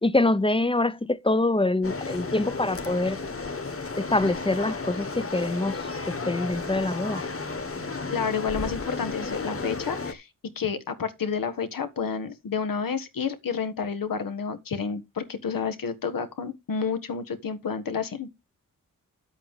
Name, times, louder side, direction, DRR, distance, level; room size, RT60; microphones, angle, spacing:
voice 1, 0.0-3.2 4.0-5.8 6.3-7.2, left 2 dB, 15° left, 0.7 m, -25 dB
sound 1, 1.8-10.1, left 3 dB, 45° left, 1.8 m, -33 dB
voice 2, 8.1-10.3 10.5-18.3, left 6 dB, 85° left, 1.6 m, -30 dB
10.5 x 8.2 x 3.7 m
cardioid pair, 60°, 33 cm